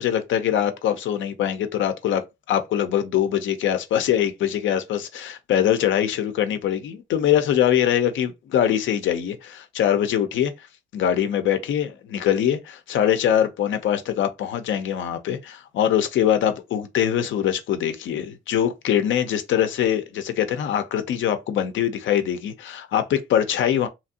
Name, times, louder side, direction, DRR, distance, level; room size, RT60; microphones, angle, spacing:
voice 1, 0.0-2.2 2.5-10.5 10.9-23.9, left 10 dB, 75° left, 0.6 m, -23 dB
3.1 x 2.5 x 2.8 m
cardioid pair, 90°, 20 cm